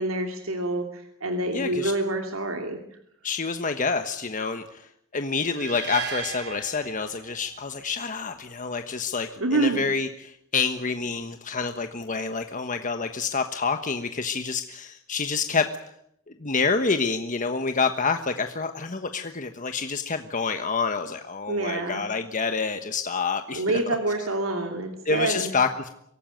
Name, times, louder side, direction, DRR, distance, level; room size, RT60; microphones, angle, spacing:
voice 1, 0.0-2.8 9.4-9.8 21.5-22.0 23.5-25.5, right 2 dB, 85° right, 4 dB, 2.8 m, -27 dB
voice 2, 1.5-1.9 3.2-15.7 16.4-23.8 25.0-25.9, left 4 dB, 40° left, 7 dB, 1.3 m, -28 dB
sound 1, 5.5-7.7, right 7 dB, 55° right, 2.8 m, -36 dB
24.5 x 18.0 x 9.2 m, 0.74 s
head